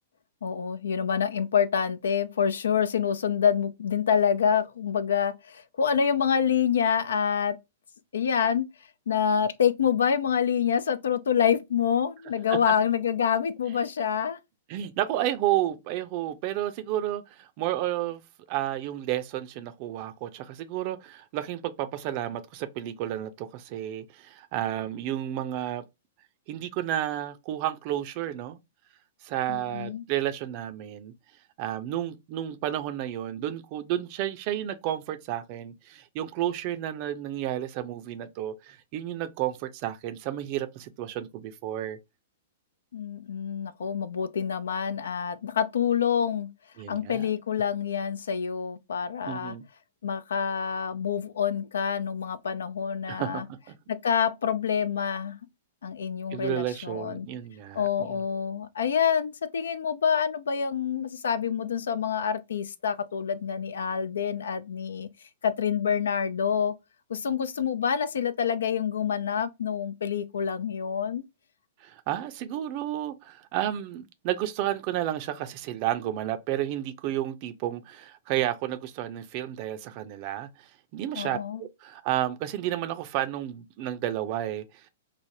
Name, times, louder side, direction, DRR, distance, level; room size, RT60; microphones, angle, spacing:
voice 1, 0.4-7.6 8.1-8.7 9.1-14.4 29.5-30.0 42.9-46.5 46.9-49.5 50.0-53.4 54.0-55.4 55.8-57.3 57.7-65.1 65.4-66.7 67.1-71.2 81.2-81.6, left 7 dB, 80° left, 0.4 m, -27 dB
voice 2, 14.7-18.2 18.5-25.8 26.5-28.6 29.2-31.1 31.6-42.0 46.8-47.3 49.2-49.6 53.1-53.4 56.3-58.2 71.8-84.9, right 12 dB, 45° right, 0.4 m, -31 dB
3.2 x 2.0 x 2.6 m
hypercardioid pair, 115°, 0 cm